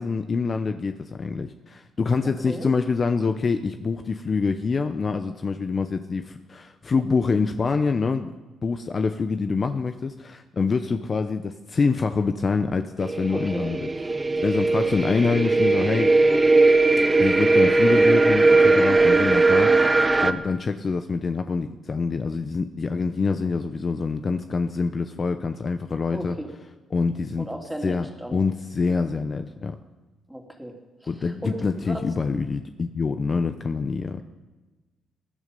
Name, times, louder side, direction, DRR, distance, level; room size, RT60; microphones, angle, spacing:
voice 1, 0.0-13.9 14.4-16.1 17.2-26.4 26.9-27.5 27.8-28.1 28.3-29.8 31.1-34.2, left 4 dB, 40° left, 8 dB, 0.8 m, -26 dB
voice 2, 2.2-2.7 13.3-13.7 18.9-19.3 26.1-26.5 27.4-28.4 30.3-30.7 31.0-32.0, right 1 dB, 5° right, 1 dB, 3.0 m, -36 dB
sound 1, 13.0-20.3, right 3 dB, 20° right, 0.8 m, -19 dB
20.0 x 11.0 x 5.4 m, 1.2 s
cardioid pair, 90°, 0 cm